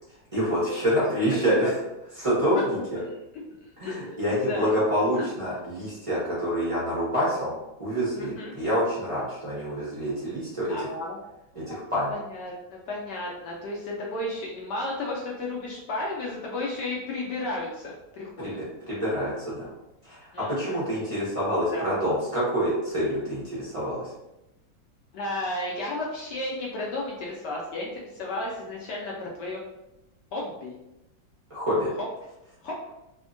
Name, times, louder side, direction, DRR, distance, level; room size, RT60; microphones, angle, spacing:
voice 1, 0.3-1.7 2.2-3.0 3.8-7.5 7.8-10.9 11.5-12.1 18.4-19.7 20.0-24.0 31.5-31.9, equal, 55° right, -9 dB, 0.3 m, -27 dB
voice 2, 3.6-4.7 5.2-5.3 8.1-8.5 10.7-11.2 11.5-11.8 12.1-18.5 20.3-20.8 21.7-21.8 25.1-29.6 30.3-30.7 32.6-32.7, left 2 dB, 75° left, -3 dB, 1.1 m, -33 dB
3.4 x 2.1 x 2.5 m, 0.92 s
omnidirectional pair, 2.0 m